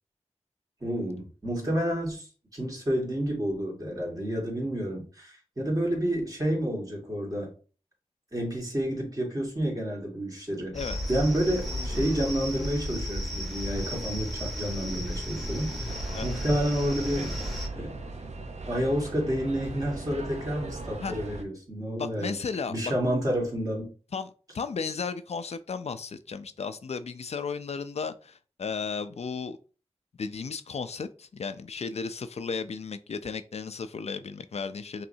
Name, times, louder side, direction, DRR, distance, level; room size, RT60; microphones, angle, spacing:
voice 1, 0.8-2.3 2.5-7.5 8.3-10.8 11.1-15.9 16.2-17.4 17.7-18.0 18.6-22.4 22.7-23.9, equal, 35° right, -2 dB, 2.0 m, -29 dB
sound 1, 10.7-17.7, equal, ahead, 1.1 m, -34 dB
Animal, 11.5-12.7 13.4-14.5 15.3-16.3, equal, 65° right, 1.9 m, -46 dB
sound 2, 15.9-21.4, right 3 dB, 90° right, 0.6 m, -39 dB
voice 2, 22.0-22.9 24.1-24.3 24.5-29.6 30.2-35.1, left 5 dB, 75° left, 11 dB, 0.4 m, -34 dB
5.5 x 3.1 x 2.7 m, 0.37 s
wide cardioid pair, 75°, 11 cm